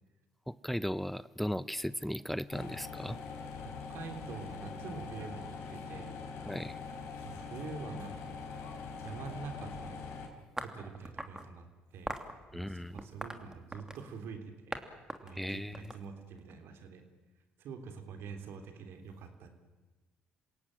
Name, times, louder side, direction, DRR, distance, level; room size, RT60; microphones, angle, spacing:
voice 1, 0.5-3.2 6.5-6.8 12.5-12.9 15.3-15.9, equal, 5° left, 17 dB, 0.7 m, -36 dB
sound 1, 2.5-10.3, left 5 dB, 75° left, 4.4 m, -43 dB
voice 2, 3.6-6.2 7.2-8.5 9.0-10.0 10.6-12.1 12.5-14.8 15.2-17.0 17.6-19.5, right 5 dB, 70° right, 7 dB, 3.5 m, -45 dB
sound 2, 10.6-11.5 12.1-12.3 13.0-14.1 14.7-14.8 15.1-16.5, right 1 dB, 15° right, 3.0 m, -41 dB
27.0 x 17.0 x 9.2 m, 1.2 s
hypercardioid pair, 60°, 4 cm